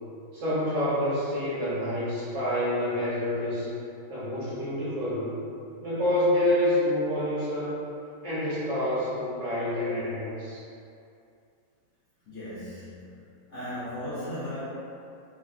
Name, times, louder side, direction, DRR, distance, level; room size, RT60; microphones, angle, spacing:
voice 1, 0.3-3.7 4.1-5.3 5.8-7.8 8.2-10.6, left 1 dB, 55° right, -11 dB, 1.0 m, -27 dB
voice 2, 12.3-13.2 13.5-14.7, left 1 dB, 65° left, -12 dB, 0.7 m, -36 dB
3.2 x 2.4 x 2.3 m, 2.6 s
omnidirectional pair, 1.9 m